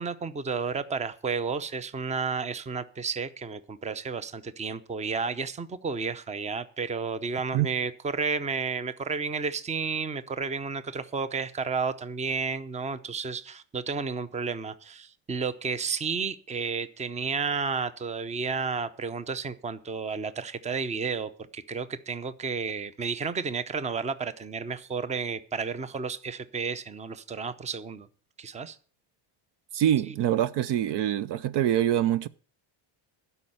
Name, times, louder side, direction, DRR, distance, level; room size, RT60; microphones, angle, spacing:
voice 1, 0.0-28.1 28.4-28.8 30.1-30.2, right 5 dB, 15° right, 0.6 m, -32 dB
voice 2, 29.7-32.3, right 11 dB, 55° right, 0.6 m, -25 dB
12.0 x 5.5 x 8.7 m
cardioid pair, 145°, 50 cm